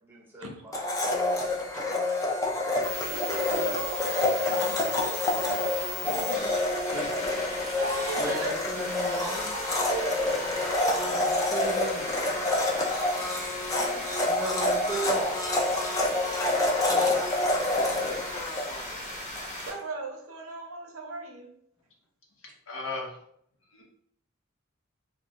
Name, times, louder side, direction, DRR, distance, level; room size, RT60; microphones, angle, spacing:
voice 1, 0.0-0.8 6.0-6.5 6.9-7.0 8.2-9.5 11.1-12.4 14.2-15.3, right 2 dB, 10° right, -4 dB, 0.7 m, -37 dB
Domestic sounds home sounds, 0.7-19.5, left 2 dB, 15° left, 0.3 m, -28 dB
sound 1, 2.8-19.7, left 1 dB, 35° left, 0.9 m, -38 dB
voice 2, 3.0-5.3 7.7-8.6 9.5-11.2 13.7-14.4 16.7-17.2 17.5-18.3 19.6-21.5, right 3 dB, 70° right, 2 dB, 0.6 m, -39 dB
voice 3, 22.7-23.2 23.7-23.8, left 3 dB, 65° left, -1 dB, 0.7 m, -35 dB
2.3 x 2.2 x 3.8 m, 0.68 s
head